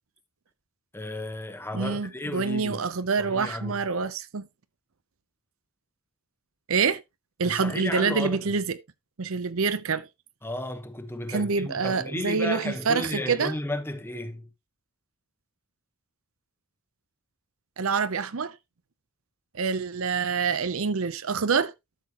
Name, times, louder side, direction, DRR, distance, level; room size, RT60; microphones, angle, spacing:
voice 1, 0.9-2.8 3.2-3.8 7.4-8.4 10.4-14.5, left 1 dB, 10° left, 1.1 m, -33 dB
voice 2, 1.7-4.5 6.7-7.0 7.4-8.8 9.2-10.1 11.3-13.5 17.8-18.6 19.5-21.7, right 5 dB, 65° right, 0.7 m, -26 dB
12.0 x 6.8 x 2.9 m
head